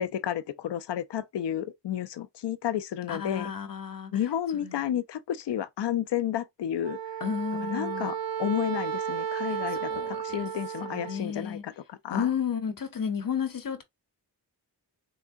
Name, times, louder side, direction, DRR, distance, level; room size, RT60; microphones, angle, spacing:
voice 1, 0.0-3.5 4.1-7.0 7.6-12.3, left 10 dB, 75° left, 0.6 m, -31 dB
voice 2, 3.1-4.1 4.6-4.8 7.2-8.1 9.5-10.5 10.8-11.6 12.1-13.8, left 7 dB, 50° left, 0.9 m, -32 dB
Wind instrument woodwind instrument, 6.8-11.2, right 9 dB, 55° right, 0.7 m, -33 dB
4.6 x 2.1 x 2.5 m
cardioid pair, 55°, 42 cm